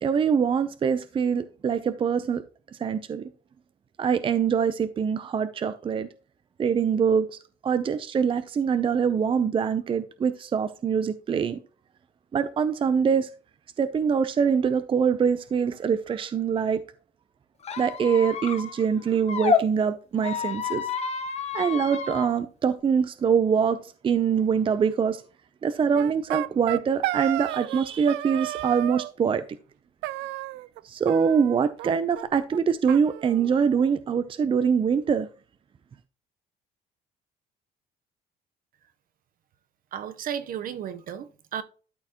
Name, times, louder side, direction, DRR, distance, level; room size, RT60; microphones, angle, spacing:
voice 1, 0.0-2.4 2.8-3.3 4.0-6.1 6.6-11.6 12.3-13.3 13.8-16.8 17.8-20.8 21.5-25.2 25.6-29.4 30.8-35.3, right 6 dB, 30° right, 0.5 m, -24 dB
Squeak, 17.6-19.6 20.2-22.3, left 6 dB, 40° left, 1.1 m, -29 dB
sound 1, 25.9-27.8 28.1-29.1 30.0-30.8 31.1-31.9 32.2-32.3 32.5-32.6 32.9-33.9, right 17 dB, 85° right, 0.4 m, -32 dB
voice 2, 39.9-41.6, right 9 dB, 55° right, 0.8 m, -34 dB
12.5 x 4.5 x 2.9 m
cardioid pair, 110°, 17 cm